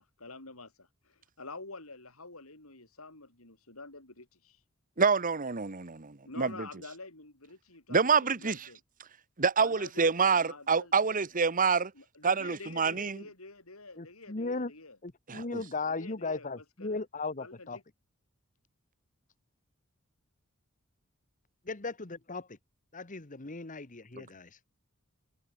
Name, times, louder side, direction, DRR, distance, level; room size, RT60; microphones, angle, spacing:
voice 1, 0.0-4.6 6.2-8.8 9.6-11.5 11.9-15.0 15.9-17.0 17.4-17.8, left 3 dB, 80° left, 7.1 m, -48 dB
voice 2, 5.0-6.7 7.9-8.7 9.4-11.9 12.2-13.2 15.3-15.6 24.1-24.2, right 5 dB, 40° right, 1.2 m, -27 dB
voice 3, 14.0-14.7 15.0-17.8 21.6-22.5 22.9-24.5, left 3 dB, 40° left, 1.5 m, -37 dB
head